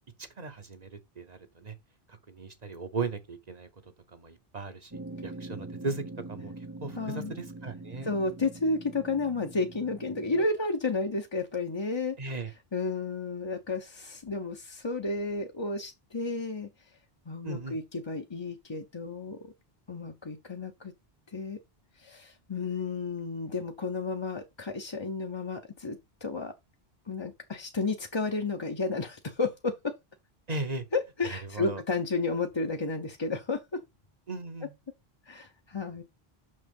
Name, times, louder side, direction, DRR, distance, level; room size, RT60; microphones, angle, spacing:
voice 1, 0.4-1.7 2.1-3.7 4.1-4.9 5.2-6.5 6.8-8.1 12.2-12.5 17.4-17.8 30.5-30.9 31.2-31.8 34.3-34.7, right 3 dB, 45° right, 1.0 m, -37 dB
sound 1, 4.9-10.5, right 2 dB, 20° right, 0.9 m, -43 dB
voice 2, 7.0-7.3 8.0-12.2 12.7-16.7 17.3-19.5 19.9-20.9 21.3-21.6 22.0-26.5 27.1-29.9 30.9-33.8 35.3-36.0, left 3 dB, 30° left, 0.7 m, -32 dB
6.4 x 6.1 x 5.3 m
omnidirectional pair, 1.1 m